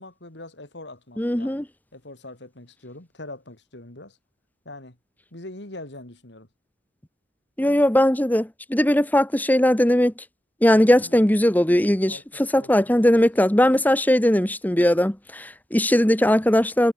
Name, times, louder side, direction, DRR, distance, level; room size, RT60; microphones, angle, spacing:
voice 1, 0.0-1.6 1.9-4.2 4.6-5.0 5.3-6.5 10.7-11.3 12.1-12.2 12.6-13.3 13.6-13.7, left 2 dB, 65° left, 3.4 m, -42 dB
voice 2, 1.2-1.6 7.6-10.1 10.6-16.9, left 1 dB, 10° left, 1.1 m, -19 dB
head